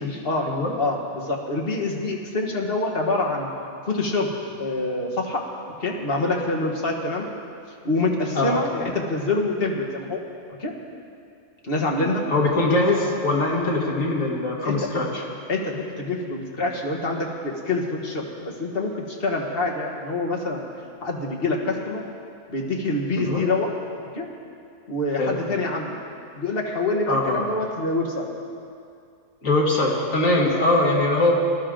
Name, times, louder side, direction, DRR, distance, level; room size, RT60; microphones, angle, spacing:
voice 1, 0.8-3.5 3.9-4.3 4.6-5.4 5.8-7.3 7.8-10.2 10.6-10.7 11.6-12.2 13.5-13.7 14.6-14.8 15.5-20.6 21.0-22.0 22.5-23.7 24.2-24.3 24.9-26.0 26.4-28.3 30.4-30.7, left 2 dB, 45° left, -1 dB, 1.8 m, -26 dB
voice 2, 12.3-15.2 23.2-23.4 25.2-25.3 27.1-27.5 29.4-31.4, left 2 dB, 70° left, -2 dB, 2.2 m, -22 dB
20.0 x 12.0 x 3.8 m, 2.4 s
omnidirectional pair, 1.4 m